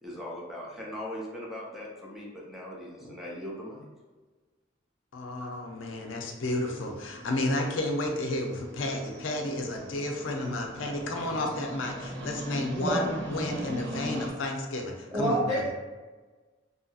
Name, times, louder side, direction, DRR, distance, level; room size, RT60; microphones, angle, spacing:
voice 1, 0.0-3.9 5.4-5.5, left 1 dB, ahead, -5 dB, 0.6 m, -40 dB
voice 2, 5.1-15.6, left 1 dB, 85° left, 2 dB, 0.5 m, -32 dB
sound 1, 6.5-14.3, right 1 dB, 65° right, 0.9 m, -41 dB
voice 3, 15.1-15.8, right 1 dB, 35° right, -8 dB, 1.2 m, -27 dB
2.7 x 2.6 x 2.3 m, 1.3 s
head